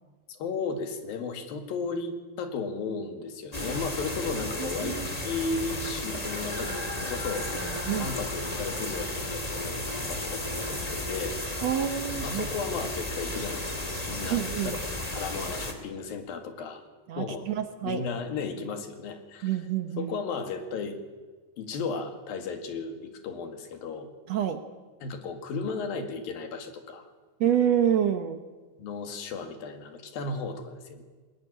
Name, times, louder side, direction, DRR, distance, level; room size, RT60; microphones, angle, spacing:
voice 1, 0.3-11.4 12.2-16.8 17.2-17.5 17.8-19.6 20.0-21.0 21.6-24.1 25.0-27.0 28.8-31.0, left 4 dB, 90° left, 7 dB, 3.8 m, -35 dB
sound 1, 3.5-15.7, left 1 dB, 15° left, 1.8 m, -33 dB
voice 2, 4.6-5.1 7.9-8.1 11.6-12.5 14.3-14.8 17.1-18.1 19.4-20.1 24.3-24.6 27.4-28.4, right 10 dB, 65° right, 9 dB, 1.8 m, -27 dB
20.5 x 20.0 x 10.0 m, 1.4 s
omnidirectional pair, 4.0 m